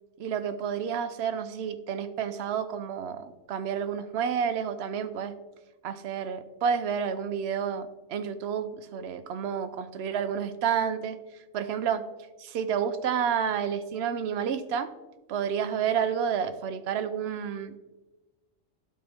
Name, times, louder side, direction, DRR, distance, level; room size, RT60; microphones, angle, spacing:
voice 1, 0.2-5.3 5.8-11.2 11.5-12.0 12.4-14.9 15.3-17.8, right 7 dB, 60° right, 10 dB, 0.8 m, -30 dB
12.0 x 4.3 x 3.4 m, 1.1 s
omnidirectional pair, 1.4 m